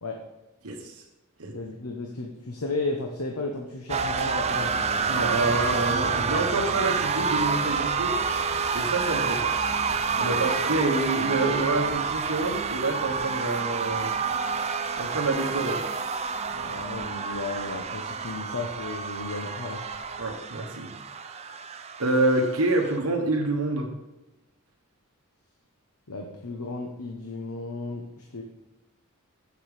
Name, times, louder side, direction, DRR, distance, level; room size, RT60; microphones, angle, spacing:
voice 1, 1.5-5.1 10.1-10.5 16.5-19.9 26.1-28.4, left 2 dB, 80° left, 2 dB, 1.0 m, -34 dB
sound 1, 3.9-23.0, right 5 dB, 30° right, 0.5 m, -28 dB
voice 2, 5.1-8.2 8.7-9.5 10.2-14.1 15.0-15.9 20.2-20.9 21.2-21.3 22.0-23.9, right 2 dB, 80° right, 1 dB, 1.3 m, -27 dB
8.2 x 6.9 x 5.0 m, 1.0 s
head